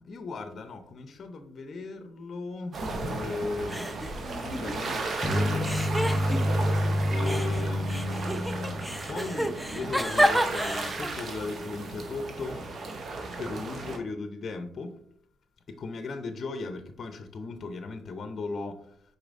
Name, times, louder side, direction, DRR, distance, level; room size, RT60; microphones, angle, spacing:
voice 1, 0.0-3.9 4.2-6.6 7.1-12.6 13.4-14.9 15.7-18.8, left 3 dB, 55° left, 0.6 m, -37 dB
sound 1, 2.7-14.0, right 3 dB, 55° right, 0.8 m, -35 dB
sound 2, 2.8-3.4 3.7-5.1 5.6-6.8 7.2-11.2, equal, ahead, 0.5 m, -30 dB
sound 3, 5.2-9.4, left 1 dB, 20° left, 1.1 m, -28 dB
4.9 x 4.0 x 2.5 m
supercardioid pair, 60°, 0 cm